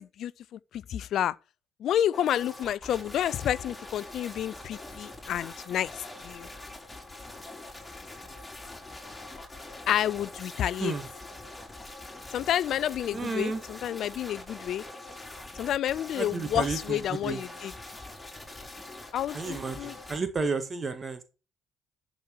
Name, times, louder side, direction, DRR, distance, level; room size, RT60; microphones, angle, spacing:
voice 1, 0.0-1.4 1.8-6.5 9.9-10.9 12.3-14.8 15.5-17.7 19.1-19.9, left 11 dB, 60° left, 0.5 m, -30 dB
sound 1, 2.1-20.2, left 2 dB, 15° left, 4.6 m, -44 dB
voice 2, 13.1-13.6 16.2-17.4 19.3-21.2, right 4 dB, 35° right, 1.8 m, -32 dB
12.0 x 6.2 x 4.7 m
figure-of-eight pair, 45°, 0 cm